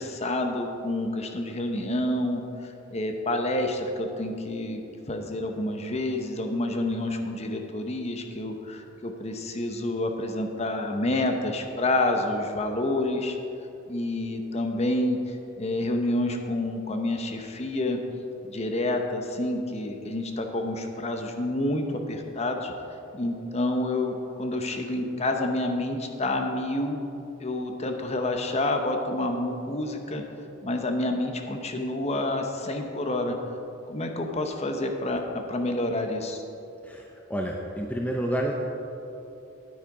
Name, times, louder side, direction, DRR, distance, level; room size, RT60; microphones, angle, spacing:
voice 1, 0.0-4.8 5.1-13.4 13.9-18.0 18.4-22.7 23.1-27.0 27.4-30.2 30.6-33.3 33.9-36.4, left 1 dB, 30° left, 4 dB, 0.8 m, -28 dB
voice 2, 36.8-38.6, equal, 5° left, 1 dB, 0.5 m, -29 dB
9.4 x 9.1 x 4.9 m, 2.9 s
head